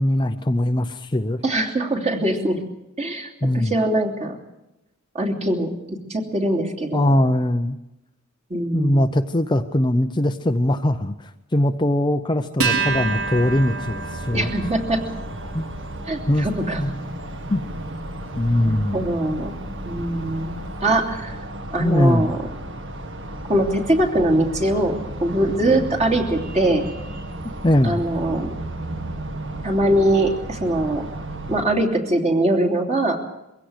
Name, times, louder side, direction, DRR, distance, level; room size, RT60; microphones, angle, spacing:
voice 1, 0.0-1.4 3.4-3.7 6.9-7.8 8.7-14.5 15.5-15.6 16.3-16.5 16.8-16.9 17.5-17.6 18.4-19.0 21.8-22.3 27.6-28.0, left 1 dB, 20° left, 7 dB, 0.7 m, -21 dB
voice 2, 1.4-2.6 3.0-4.4 5.1-7.1 8.5-9.1 14.3-15.0 16.1-16.8 18.6-19.6 19.8-20.5 20.8-21.4 21.7-22.4 23.5-26.8 27.8-28.5 29.6-31.1 31.5-33.2, right 1 dB, 30° right, 1 dB, 3.0 m, -22 dB
Acoustic guitar, 12.6-19.4, right 4 dB, 85° right, 4.9 m, -30 dB
sound 1, 12.8-31.6, right 1 dB, 55° right, 2.0 m, -34 dB
23.0 x 16.5 x 8.0 m, 0.93 s
head